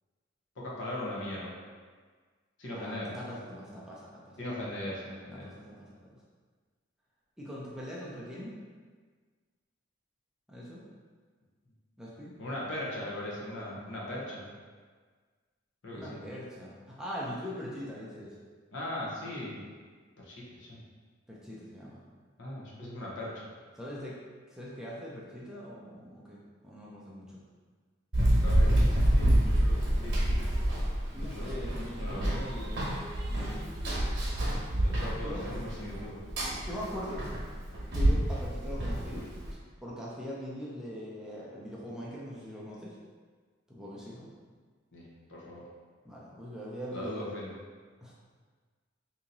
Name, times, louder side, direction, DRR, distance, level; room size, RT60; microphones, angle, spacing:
voice 1, 0.6-1.6 2.6-3.3 4.4-5.5 12.4-14.5 15.8-16.2 18.7-19.7 20.2-20.8 22.4-23.5 28.4-30.2 31.2-31.5 32.0-32.4 34.7-36.2 44.9-45.6 46.9-47.6, left 1 dB, 70° left, -4 dB, 0.9 m, -39 dB
voice 2, 2.7-4.4 5.4-6.2 7.4-8.6 10.5-10.8 12.0-12.4 15.9-18.4 21.3-22.0 23.8-24.1 24.5-27.4 31.1-33.0 33.3-33.7 35.0-35.4 36.7-37.2 37.9-43.0 43.7-44.3 46.0-47.2 48.0-48.1, equal, 5° right, -6 dB, 0.5 m, -42 dB
Run, 28.1-39.5, right 1 dB, 60° right, 1.0 m, -28 dB
2.9 x 2.7 x 3.9 m, 1.5 s
head